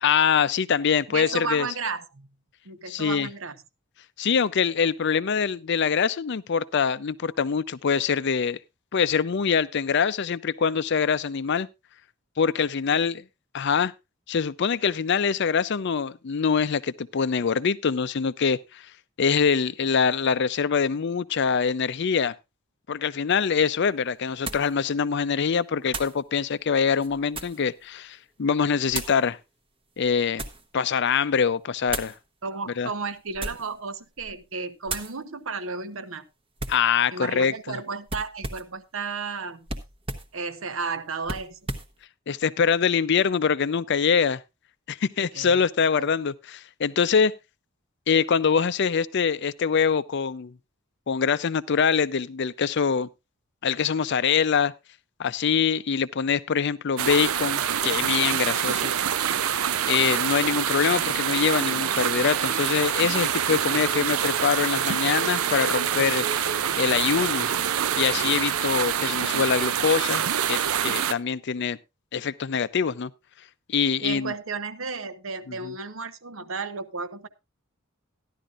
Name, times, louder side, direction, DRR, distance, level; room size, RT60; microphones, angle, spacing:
voice 1, 0.0-1.7 2.9-3.3 4.2-8.6 8.9-11.7 12.4-13.2 13.5-13.9 14.3-18.8 19.2-22.3 22.9-29.4 30.0-30.4 30.7-32.1 32.8-32.9 36.7-37.8 42.3-44.4 44.9-47.3 48.1-50.5 51.1-53.1 53.6-54.7 55.2-58.9 59.9-66.3 66.8-67.5 68.0-71.8 72.1-73.1 73.7-74.3 75.6-75.7, left 6 dB, 55° left, 0.5 m, -24 dB
voice 2, 1.1-2.3 2.6-3.6 10.6-10.7 32.4-36.2 37.1-39.7 40.3-41.6 45.3-45.6 46.0-46.1 74.0-77.3, right 4 dB, 70° right, 0.9 m, -33 dB
sound 1, 23.3-23.4 24.4-24.7 25.9-26.2 26.9-27.7 28.9-29.2 30.0-30.7 31.9-32.2 33.3-33.8 34.2-34.4 34.9-35.1 36.6-36.9 38.1-38.8 39.7-40.3 41.2-41.9, right 2 dB, 25° right, 1.0 m, -35 dB
sound 2, 57.0-71.1, right 9 dB, 90° right, 0.6 m, -26 dB
sound 3, 61.4-69.8, right 5 dB, 45° right, 0.6 m, -42 dB
14.5 x 11.0 x 2.5 m
head